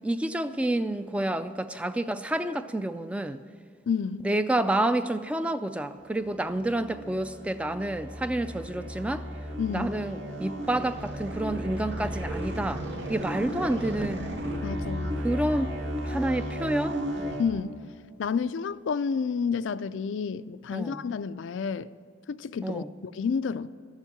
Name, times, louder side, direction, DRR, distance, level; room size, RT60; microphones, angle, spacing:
voice 1, 0.0-3.4 4.2-9.3 9.7-14.2 15.2-15.8 16.0-17.3 20.7-21.0 22.6-22.9, right 1 dB, 5° right, 0.3 m, -29 dB
voice 2, 3.9-4.3 9.6-10.0 14.6-15.1 17.4-17.8 18.2-21.9 22.3-22.8 23.1-23.7, left 6 dB, 80° left, 0.4 m, -30 dB
sound 1, 6.0-17.4, equal, 75° right, 1.8 m, -34 dB
13.5 x 7.3 x 9.1 m
head